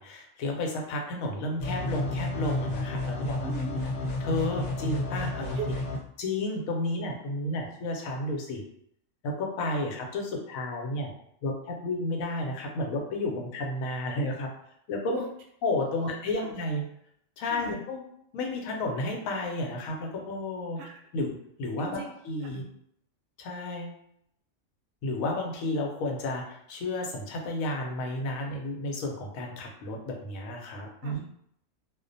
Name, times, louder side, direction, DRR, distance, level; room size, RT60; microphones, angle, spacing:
voice 1, 0.0-3.5 4.2-5.6 6.2-8.6 9.2-11.1 11.4-14.5 14.9-15.2 15.6-16.8 17.4-18.0 18.3-20.8 21.1-22.6 23.4-24.0 25.0-31.2, left 2 dB, 90° left, 1 dB, 1.0 m, -32 dB
sound 1, 1.6-6.0, left 2 dB, 65° left, 0.9 m, -31 dB
voice 2, 3.4-4.1 5.5-5.7 15.1-15.3 16.0-16.5 17.4-17.8 20.8-21.0 21.8-22.1 22.4-22.6 31.0-31.3, right 4 dB, 65° right, 0 dB, 0.8 m, -39 dB
2.4 x 2.1 x 2.5 m, 0.71 s
omnidirectional pair, 1.4 m